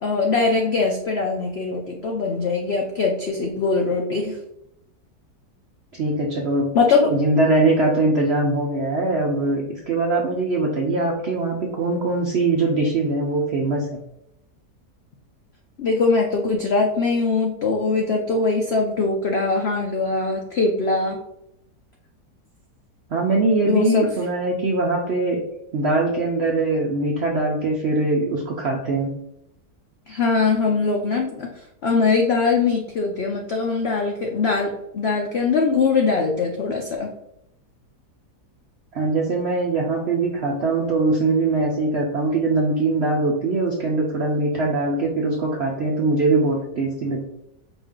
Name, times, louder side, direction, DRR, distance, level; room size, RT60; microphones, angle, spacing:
voice 1, 0.0-4.4 6.7-7.1 15.8-21.2 23.7-24.1 30.1-31.5 31.8-37.1, left 4 dB, 80° left, 1 dB, 0.5 m, -21 dB
voice 2, 5.9-6.7 7.1-14.0 23.1-25.4 25.7-29.1 38.9-47.3, right 2 dB, 70° right, 0 dB, 0.6 m, -22 dB
4.9 x 2.6 x 3.6 m, 0.82 s
omnidirectional pair, 1.8 m